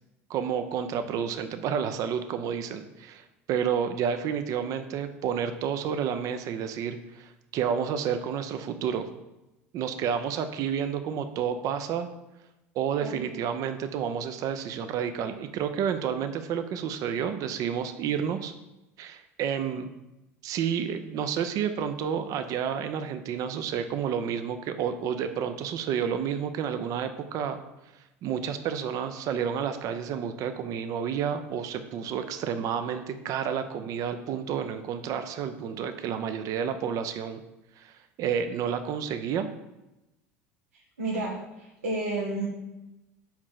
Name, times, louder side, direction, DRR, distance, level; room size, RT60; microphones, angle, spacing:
voice 1, 0.3-9.1 9.7-12.1 12.7-18.5 19.0-19.9 20.4-27.6 28.2-37.4 37.8-37.9 38.2-39.5, right 8 dB, 55° right, 9 dB, 0.6 m, -30 dB
voice 2, 40.7-42.5, right 2 dB, 90° right, -4 dB, 1.1 m, -32 dB
4.9 x 4.5 x 5.7 m, 0.96 s
hypercardioid pair, 75°, 7 cm